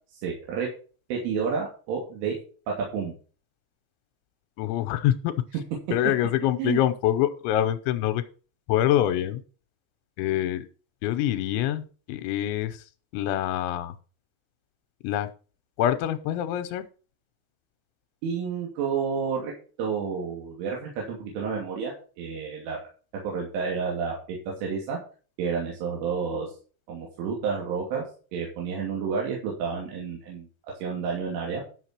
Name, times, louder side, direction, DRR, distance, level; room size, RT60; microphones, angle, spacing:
voice 1, 0.1-0.7 1.1-2.4 2.7-3.1 6.6-6.8 18.2-19.5 19.8-22.8 23.2-25.0 25.4-26.5 26.9-28.0 28.3-30.5 30.8-31.6, right 6 dB, 90° right, -2 dB, 5.1 m, -30 dB
voice 2, 4.6-5.3 5.9-8.2 8.7-9.4 10.2-10.7 11.0-12.8 13.1-13.9 15.0-15.3 15.8-16.9, left 12 dB, 90° left, 10 dB, 3.1 m, -25 dB
12.0 x 6.7 x 4.5 m, 0.37 s
omnidirectional pair, 5.5 m